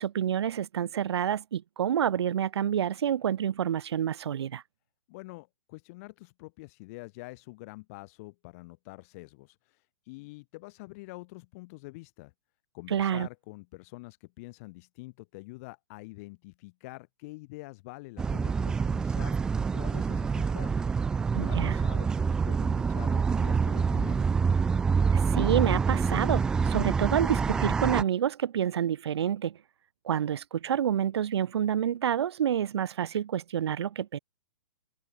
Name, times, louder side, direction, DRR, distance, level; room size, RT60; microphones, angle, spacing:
voice 1, 0.0-4.6 12.9-13.3 21.3-21.8 25.1-29.6 30.0-34.2, right 9 dB, 60° right, 3.5 m, -28 dB
voice 2, 5.1-12.3 12.7-19.4 19.7-20.7 21.4-24.2, left 24 dB, 30° left, 6.5 m, -46 dB
sound 1, 18.2-28.0, right 5 dB, 5° right, 0.4 m, -26 dB
hypercardioid pair, 170°, 15 cm